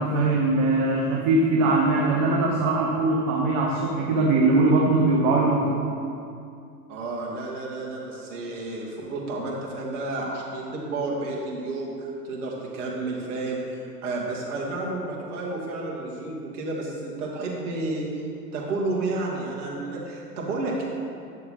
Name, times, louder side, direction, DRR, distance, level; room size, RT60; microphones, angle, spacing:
voice 1, 0.0-5.7, right 2 dB, 40° right, -2 dB, 1.4 m, -21 dB
voice 2, 6.9-18.2 18.5-20.8, right 2 dB, 60° right, -3 dB, 2.5 m, -31 dB
11.0 x 6.8 x 4.3 m, 2.5 s
hypercardioid pair, 105°, 49 cm